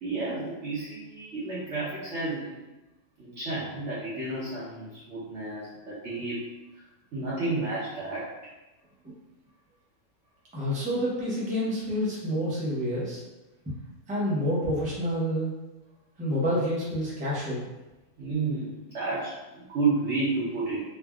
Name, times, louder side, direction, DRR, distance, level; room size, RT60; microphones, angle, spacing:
voice 1, 0.0-2.6 3.2-6.4 7.1-8.2 18.2-20.8, right 3 dB, 60° right, -9 dB, 1.0 m, -31 dB
voice 2, 10.5-13.2 14.1-15.5 16.2-17.7, equal, 10° right, -8 dB, 0.5 m, -28 dB
3.3 x 2.2 x 2.3 m, 1.1 s
omnidirectional pair, 1.5 m